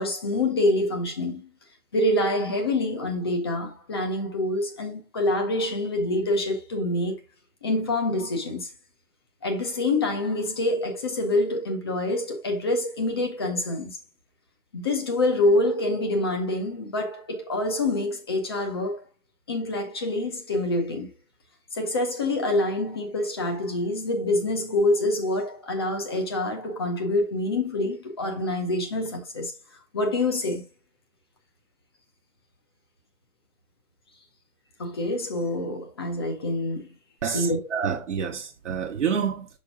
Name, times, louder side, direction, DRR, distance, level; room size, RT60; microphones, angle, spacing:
voice 1, 0.0-1.5 1.9-7.2 7.6-8.7 9.4-14.0 14.7-19.0 19.5-21.1 21.7-29.5 29.9-30.6 34.8-36.9 37.3-37.7, left 2 dB, 15° left, 0.7 m, -26 dB
voice 2, 37.2-39.5, right 7 dB, 50° right, 1.1 m, -28 dB
6.2 x 4.7 x 3.6 m
hypercardioid pair, 155°, 46 cm